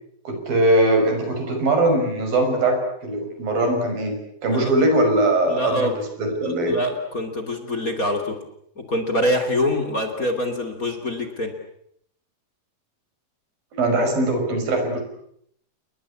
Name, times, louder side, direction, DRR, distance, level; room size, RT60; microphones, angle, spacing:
voice 1, 0.3-4.2 4.4-6.8 13.7-15.0, right 1 dB, 85° right, 5 dB, 7.7 m, -21 dB
voice 2, 5.5-5.9 6.4-8.4 8.8-11.5, left 1 dB, 25° left, 7 dB, 3.0 m, -25 dB
30.0 x 21.0 x 8.6 m, 0.71 s
omnidirectional pair, 4.0 m